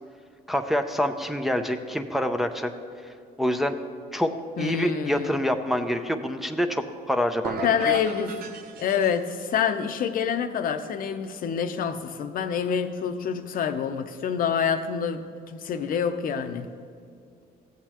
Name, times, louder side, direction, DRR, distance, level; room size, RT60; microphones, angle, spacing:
voice 1, 0.5-2.7 3.4-3.8 4.1-4.3 4.6-8.0, equal, ahead, 5 dB, 0.5 m, -26 dB
voice 2, 4.6-5.4 7.6-8.5 8.8-16.7, left 7 dB, 55° left, 8 dB, 0.7 m, -27 dB
sound 1, 7.4-9.5, right 4 dB, 65° right, 0.8 m, -37 dB
15.0 x 8.2 x 3.0 m, 2.3 s
cardioid pair, 110°, 17 cm